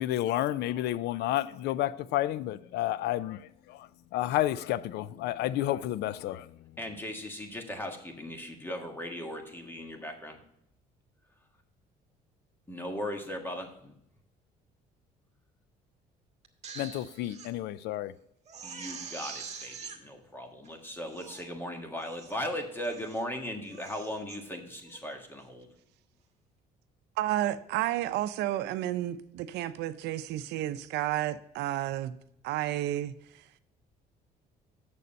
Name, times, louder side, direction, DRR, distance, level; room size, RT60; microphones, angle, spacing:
voice 1, 0.0-6.7 16.8-18.1, left 14 dB, 80° left, 0.4 m, -31 dB
voice 2, 6.8-10.4 12.7-13.9 18.6-25.7, left 1 dB, 10° left, 1.6 m, -38 dB
Crying sobbing, 16.4-17.5 17.9-18.0 18.5-20.0 20.6-20.7 21.1-21.5 22.0-22.4 22.8-23.3 23.6-24.4 24.9-25.1, right 6 dB, 40° right, 1.4 m, -45 dB
voice 3, 27.2-32.2 32.4-33.1, right 13 dB, 85° right, 0.6 m, -31 dB
7.3 x 6.8 x 5.3 m
cardioid pair, 110°, 17 cm